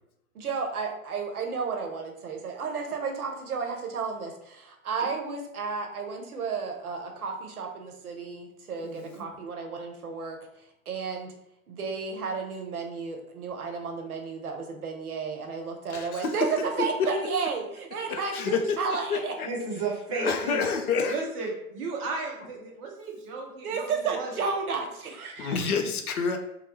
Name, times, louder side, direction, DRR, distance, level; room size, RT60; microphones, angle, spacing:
voice 1, 0.3-10.4 10.9-11.3 11.7-19.3 23.6-25.7, right 5 dB, 80° right, 3 dB, 0.6 m, -32 dB
voice 2, 8.8-9.2 19.4-20.6 21.1-24.5, right 3 dB, 25° right, 0 dB, 0.3 m, -34 dB
voice 3, 15.9-16.3 16.8-16.9 18.1-19.5 20.1-21.2 25.4-26.4, left 5 dB, 75° left, 6 dB, 0.5 m, -28 dB
2.2 x 2.1 x 2.9 m, 0.79 s
figure-of-eight pair, 95°, 44 cm